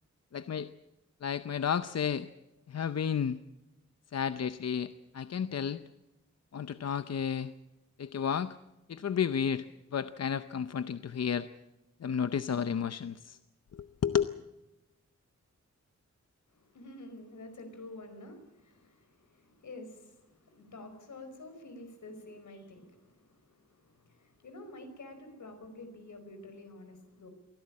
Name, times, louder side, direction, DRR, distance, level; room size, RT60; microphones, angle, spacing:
voice 1, 0.3-0.7 1.2-2.3 2.7-3.4 4.1-5.8 6.5-7.5 8.0-8.6 8.9-9.7 9.9-11.5 12.0-13.4 13.7-14.2, left 7 dB, 60° left, 12 dB, 0.7 m, -32 dB
voice 2, 16.5-27.3, left 2 dB, 85° left, 7 dB, 5.0 m, -49 dB
23.5 x 16.0 x 8.6 m, 1.0 s
wide cardioid pair, 130°, 29 cm